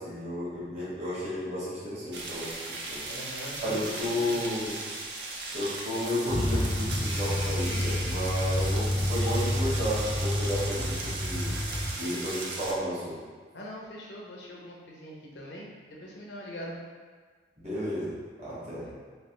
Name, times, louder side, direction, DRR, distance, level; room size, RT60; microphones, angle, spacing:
voice 1, 0.0-3.0 3.6-4.8 5.5-11.5 11.9-13.2 17.6-18.9, equal, 40° right, -10 dB, 1.3 m, -32 dB
sound 1, 2.1-12.7, right 2 dB, 65° right, 0.5 m, -37 dB
voice 2, 3.1-4.5 13.5-16.7 18.6-18.9, equal, 75° left, -3 dB, 0.7 m, -42 dB
Truck, 6.3-11.9, left 1 dB, 25° left, 0.4 m, -29 dB
3.2 x 3.0 x 3.0 m, 1.5 s
head